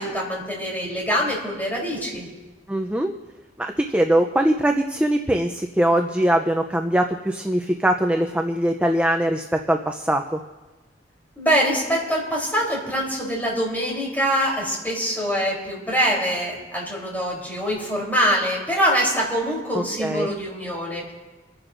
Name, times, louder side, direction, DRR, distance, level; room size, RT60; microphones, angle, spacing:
voice 1, 0.0-2.3 11.4-21.1, equal, 10° left, -4 dB, 3.5 m, -24 dB
voice 2, 2.7-3.1 3.6-10.4 19.7-20.3, right 1 dB, 5° right, 3 dB, 0.5 m, -22 dB
28.5 x 10.5 x 2.6 m, 1.2 s
head